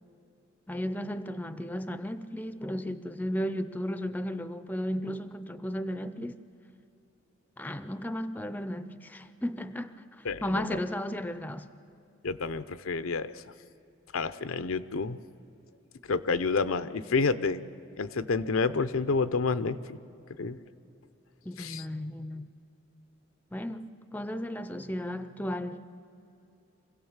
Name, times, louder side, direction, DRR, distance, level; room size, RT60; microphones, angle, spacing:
voice 1, 0.7-6.4 7.6-11.7 21.5-22.5 23.5-25.8, equal, 10° left, 0.5 m, -34 dB
voice 2, 12.2-13.3 14.1-15.2 16.1-17.6 18.0-20.0 20.4-20.6 21.6-21.8, left 4 dB, 80° left, 0.7 m, -29 dB
25.5 x 16.5 x 7.3 m
head